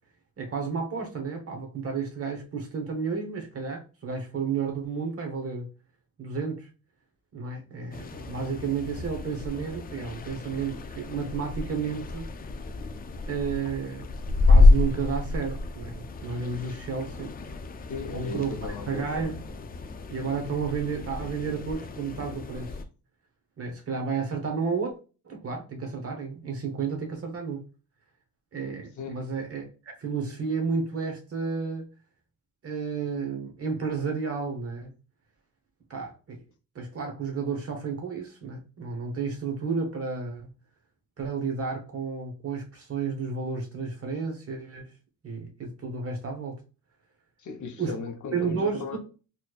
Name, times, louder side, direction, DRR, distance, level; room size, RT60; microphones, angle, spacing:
voice 1, 0.4-5.7 6.2-6.7 7.3-12.3 13.3-14.1 14.5-17.3 18.1-18.5 18.9-19.4 20.1-22.7 23.6-24.9 25.2-27.6 28.5-31.9 32.6-34.9 35.9-36.4 36.7-40.5 41.2-44.9 45.2-46.6 47.8-47.9 48.3-49.0, right 5 dB, 40° right, 1.1 m, -32 dB
sound 1, 7.9-22.8, left 3 dB, 25° left, 0.3 m, -27 dB
voice 2, 17.9-19.3 29.0-29.2 47.4-49.0, left 4 dB, 50° left, 0.8 m, -37 dB
4.1 x 3.1 x 2.4 m
cardioid pair, 125°, 37 cm